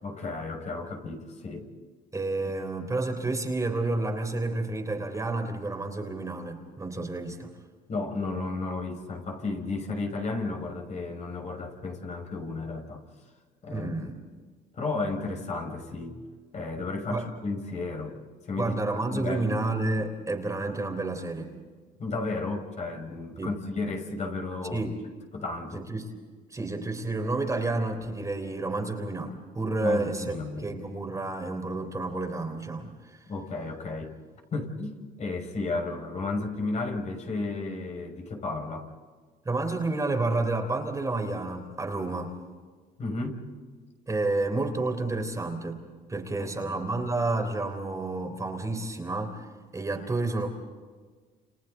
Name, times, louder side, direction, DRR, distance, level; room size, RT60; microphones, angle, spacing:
voice 1, 0.0-1.7 7.9-13.0 13.6-13.9 14.7-16.3 16.5-18.2 18.4-18.8 19.1-19.6 22.0-24.8 25.3-25.8 29.8-30.7 33.3-34.1 34.5-38.9 43.0-43.4 46.4-46.8, left 3 dB, 45° left, 3 dB, 5.9 m, -33 dB
voice 2, 2.1-7.5 13.7-14.1 17.1-17.3 18.6-21.5 23.4-23.5 24.7-25.0 25.7-26.1 26.5-33.2 39.4-42.3 44.1-45.8 46.1-49.5 49.7-50.5, right 2 dB, 20° right, 4 dB, 3.5 m, -30 dB
30.0 x 29.5 x 4.0 m, 1.4 s
cardioid pair, 110°, 17 cm